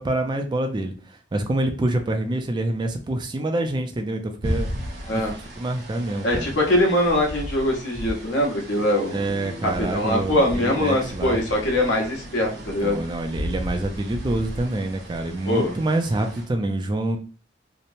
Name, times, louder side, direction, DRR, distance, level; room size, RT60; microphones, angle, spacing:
voice 1, 0.0-4.7 5.1-5.2 5.6-6.4 9.1-11.4 12.8-17.2, right 1 dB, 25° right, 5 dB, 0.3 m, -26 dB
sound 1, 4.4-16.4, equal, 60° right, 1.0 m, -35 dB
voice 2, 6.2-9.2 9.8-13.0 15.5-15.8, left 1 dB, 70° left, -1 dB, 1.0 m, -22 dB
sound 2, 8.7-14.0, equal, 25° left, 0.8 m, -43 dB
2.9 x 2.0 x 2.6 m, 0.38 s
head